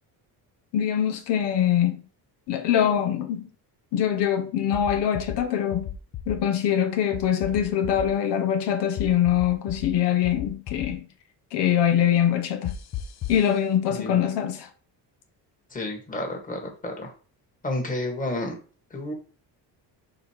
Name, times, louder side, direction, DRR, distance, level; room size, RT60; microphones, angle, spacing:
voice 1, 0.7-2.0 2.5-3.5 3.9-5.9 6.3-11.1 11.5-12.7 13.3-14.7, left 10 dB, 80° left, 0.9 m, -23 dB
sound 1, 4.7-5.4 5.7-6.4 7.1-8.1 9.0-9.9 10.2-10.9 12.6-13.4, left 11 dB, 40° left, 0.6 m, -34 dB
voice 2, 15.7-17.1 17.6-18.6 18.9-19.1, left 1 dB, 20° left, 1.6 m, -31 dB
5.2 x 4.0 x 4.5 m
cardioid pair, 140°, 41 cm